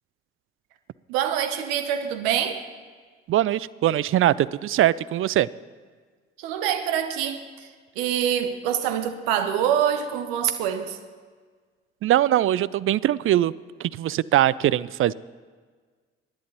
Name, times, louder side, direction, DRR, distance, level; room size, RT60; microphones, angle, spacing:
voice 1, 1.1-2.6 6.4-7.7 8.0-11.0, right 9 dB, 75° right, 9 dB, 0.9 m, -25 dB
voice 2, 3.3-5.5 12.0-13.5 13.8-15.1, right 13 dB, 40° right, 20 dB, 0.4 m, -21 dB
23.5 x 11.0 x 3.0 m, 1.5 s
hypercardioid pair, 50°, 31 cm